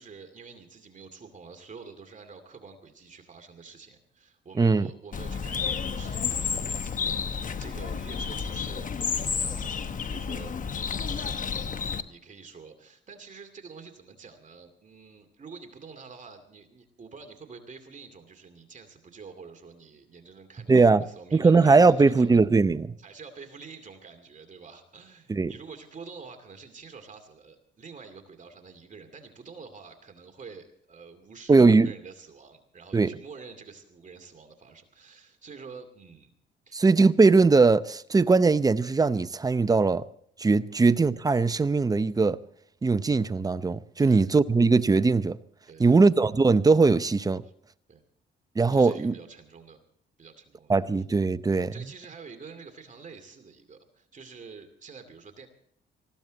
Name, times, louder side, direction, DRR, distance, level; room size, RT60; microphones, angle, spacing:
voice 1, 0.0-10.8 11.1-11.6 12.0-22.4 23.0-36.3 36.7-36.8 44.0-44.2 45.7-46.1 47.0-47.1 47.4-47.5 47.9-48.0 48.7-49.8 50.2-50.7 51.5-55.5, right 5 dB, 40° right, 2.4 m, -47 dB
voice 2, 4.6-4.9 20.7-21.0 21.3-22.9 25.3-25.5 31.5-31.9 32.9-33.1 36.7-40.0 40.4-42.4 42.8-45.4 45.8-47.4 48.6-49.1 50.7-51.7, right 4 dB, 20° right, 0.6 m, -20 dB
Bird, 5.1-12.0, left 6 dB, 40° left, 1.0 m, -31 dB
19.5 x 15.0 x 4.0 m
cardioid pair, 90°, 20 cm